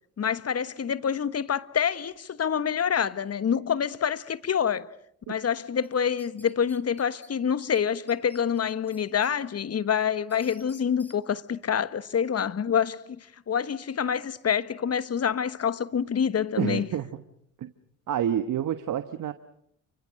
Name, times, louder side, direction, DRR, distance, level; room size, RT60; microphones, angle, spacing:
voice 1, 0.2-4.8 5.3-13.0 13.5-16.9, left 7 dB, 40° left, 1.4 m, -27 dB
sound 1, 5.8-7.3 7.7-7.8 8.1-9.3 9.7-11.2, equal, 5° left, 5.2 m, -55 dB
voice 2, 16.6-17.2 17.6-17.7 18.1-19.3, right 10 dB, 60° right, 1.4 m, -28 dB
29.5 x 24.5 x 6.4 m
hypercardioid pair, 55°, 36 cm